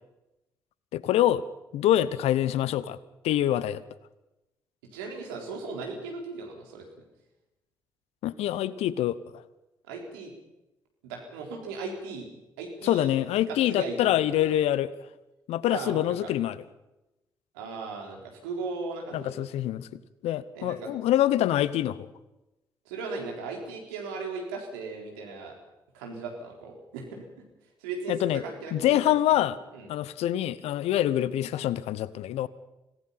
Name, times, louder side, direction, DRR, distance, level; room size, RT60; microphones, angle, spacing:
voice 1, 0.9-1.4 1.7-3.0 3.2-3.8 8.2-9.4 12.8-14.9 15.5-16.6 19.1-19.9 20.2-22.1 28.1-28.4 28.7-29.6 29.9-32.5, left 12 dB, 65° left, 18 dB, 0.9 m, -25 dB
voice 2, 4.9-6.9 9.9-10.3 11.0-12.3 12.6-13.2 13.5-14.5 15.7-16.3 17.5-19.5 20.5-20.9 22.9-25.6 25.9-27.2 27.8-29.0 29.7-29.9, right 4 dB, 80° right, 1 dB, 4.0 m, -37 dB
25.5 x 18.5 x 5.8 m, 0.97 s
hypercardioid pair, 45°, 11 cm